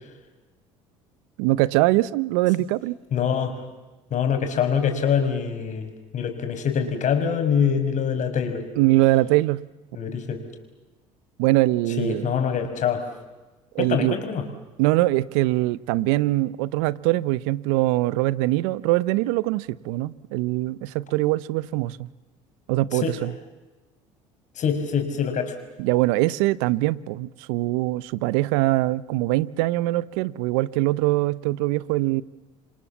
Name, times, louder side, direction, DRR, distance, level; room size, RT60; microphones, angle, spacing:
voice 1, 1.4-3.0 8.8-9.6 11.4-12.3 13.7-14.2 14.8-22.1 22.7-23.3 25.8-32.2, right 18 dB, 75° right, 19 dB, 0.9 m, -22 dB
voice 2, 3.1-3.6 4.1-8.7 9.9-10.4 12.0-13.1 13.8-14.4 22.9-23.1 24.6-25.6, left 7 dB, 50° left, 6 dB, 6.0 m, -24 dB
28.0 x 26.0 x 7.4 m, 1.2 s
hypercardioid pair, 75°, 16 cm